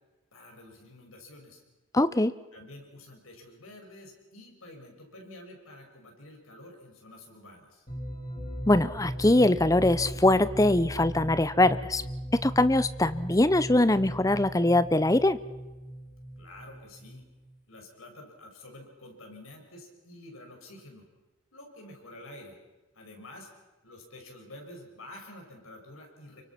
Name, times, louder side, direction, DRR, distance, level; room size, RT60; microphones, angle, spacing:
voice 1, 0.3-1.6 2.5-7.9 16.4-17.2 17.7-21.1 21.5-22.6 22.9-23.5 23.8-26.4, left 1 dB, 85° left, 2 dB, 6.0 m, -49 dB
voice 2, 1.9-2.3 8.7-12.0 12.4-15.4, left 1 dB, 15° left, 14 dB, 0.7 m, -22 dB
sound 1, 7.9-17.5, equal, 35° left, 3.8 m, -38 dB
27.5 x 24.0 x 5.9 m, 1.1 s
head